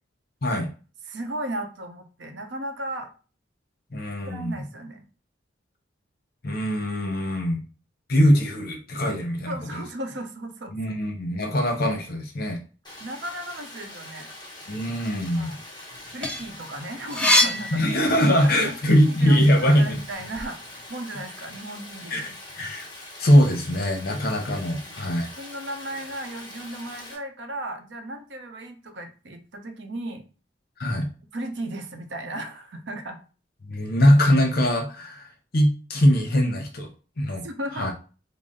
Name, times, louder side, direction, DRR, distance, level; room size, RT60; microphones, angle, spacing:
voice 1, 1.0-3.1 4.3-5.0 9.5-11.0 13.0-14.3 15.3-15.6 16.1-17.8 18.3-18.4 18.6-20.6 20.9-22.4 24.9-25.0 25.4-30.2 31.3-33.2 37.4-37.9, right 1 dB, 70° right, 6 dB, 0.7 m, -35 dB
voice 2, 3.9-4.5 6.4-7.6 8.1-9.8 10.7-12.6 14.7-15.5 17.7-20.0 22.1-22.9 23.2-25.3 30.8-31.1 33.7-36.9 37.2-37.4 37.8-37.9, equal, 55° left, 3 dB, 0.8 m, -22 dB
Stream, 12.8-27.2, left 1 dB, 25° left, 1.1 m, -43 dB
sound 1, 15.9-18.6 19.1-20.5, left 1 dB, 5° left, 0.5 m, -25 dB
4.0 x 2.0 x 3.7 m, 0.36 s
head